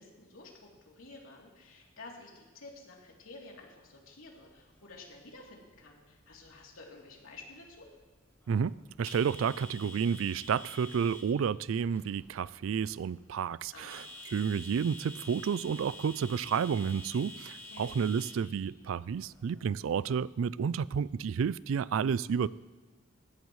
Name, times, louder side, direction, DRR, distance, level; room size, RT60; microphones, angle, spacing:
voice 1, 0.0-7.9 13.7-14.0 17.6-17.9, left 3 dB, 85° left, -2 dB, 3.1 m, -51 dB
sound 1, 4.0-20.2, left 1 dB, 10° left, 2.3 m, -50 dB
voice 2, 8.5-22.5, right 7 dB, 70° right, 19 dB, 0.3 m, -31 dB
19.0 x 16.5 x 3.2 m, 1.3 s
head